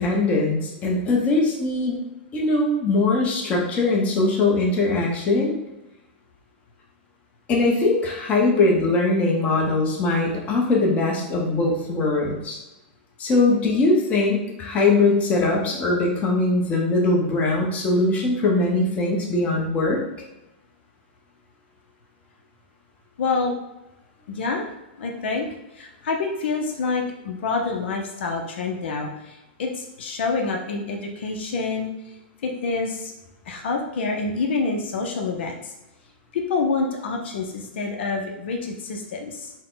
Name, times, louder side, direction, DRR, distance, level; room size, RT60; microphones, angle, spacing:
voice 1, 0.0-2.0 2.3-5.5 7.5-12.6 13.2-20.0, left 2 dB, 25° left, -2 dB, 0.8 m, -21 dB
voice 2, 23.2-23.5 24.3-24.6 25.0-25.5 25.7-31.9 32.4-33.1 33.5-35.7 36.3-39.5, left 4 dB, 70° left, 2 dB, 0.7 m, -27 dB
4.1 x 2.2 x 3.9 m, 0.99 s
supercardioid pair, 150°, 6 cm